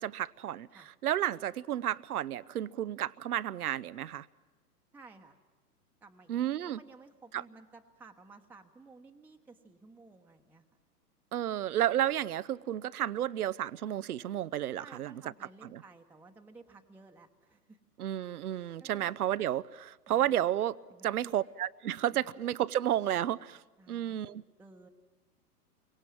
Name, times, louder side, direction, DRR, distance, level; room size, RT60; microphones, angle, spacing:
voice 1, 0.0-0.7 1.0-4.3 6.3-6.8 7.3-7.4 11.3-15.1 15.6-15.8 18.0-20.8 21.0-23.6 23.9-24.4, right 11 dB, 70° right, 17 dB, 0.8 m, -32 dB
voice 2, 4.9-5.4 6.0-10.6 14.7-17.8 18.8-19.1 20.9-21.4 22.1-22.3 23.8-24.9, right 3 dB, 5° right, 2 dB, 1.1 m, -55 dB
29.5 x 24.5 x 7.5 m, 1.2 s
figure-of-eight pair, 115°, 47 cm